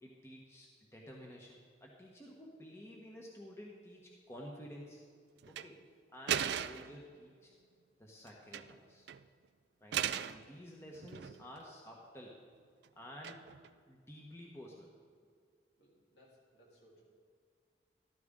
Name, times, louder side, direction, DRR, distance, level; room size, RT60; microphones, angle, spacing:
voice 1, 0.0-5.0 5.5-5.8 6.1-7.5 8.0-9.1 9.8-12.4 12.9-13.4 13.9-14.9, equal, 15° left, -2 dB, 1.2 m, -52 dB
sound 1, 5.4-5.7 6.3-7.0 8.3-8.8 9.1-9.2 9.9-10.4 10.9-11.6 13.2-13.7, right 9 dB, 75° right, 0.4 m, -37 dB
voice 2, 15.8-17.0, right 1 dB, 75° left, -4 dB, 3.8 m, -64 dB
14.0 x 13.0 x 3.8 m, 2.1 s
head